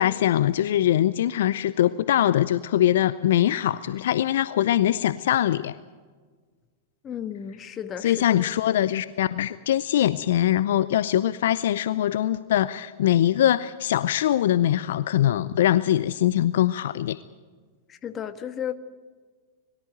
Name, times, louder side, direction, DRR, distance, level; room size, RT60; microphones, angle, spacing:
voice 1, 0.0-5.8 8.0-17.2, left 12 dB, 65° left, 16 dB, 0.6 m, -22 dB
voice 2, 7.0-8.4 17.9-18.8, left 9 dB, 30° left, 10 dB, 1.5 m, -34 dB
22.5 x 14.0 x 9.2 m, 1.5 s
hypercardioid pair, 100°, 0 cm